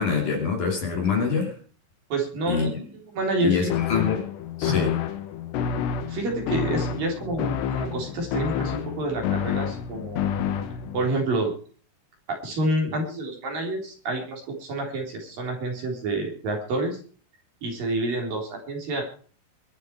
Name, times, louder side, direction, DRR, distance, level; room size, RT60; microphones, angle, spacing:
voice 1, 0.0-1.5 2.5-2.7 3.4-4.3 4.6-5.0, left 5 dB, 45° left, 2 dB, 3.9 m, -25 dB
voice 2, 2.1-3.7 4.7-4.9 6.1-10.3 10.9-11.5 12.3-17.0 17.6-19.0, right 2 dB, 50° right, 1 dB, 5.0 m, -28 dB
sound 1, 3.7-11.1, left 8 dB, 70° left, 3.3 m, -28 dB
23.5 x 8.2 x 4.6 m, 0.42 s
omnidirectional pair, 5.6 m